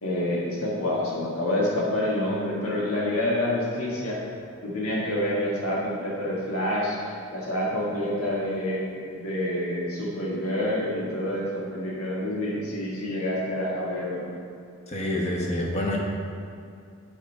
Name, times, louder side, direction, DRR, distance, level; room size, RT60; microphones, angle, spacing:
voice 1, 0.0-4.2 4.6-14.4, left 1 dB, 90° left, -5 dB, 1.6 m, -28 dB
voice 2, 14.9-16.0, left 1 dB, 30° left, -2 dB, 1.0 m, -27 dB
8.1 x 5.2 x 4.5 m, 2.4 s
head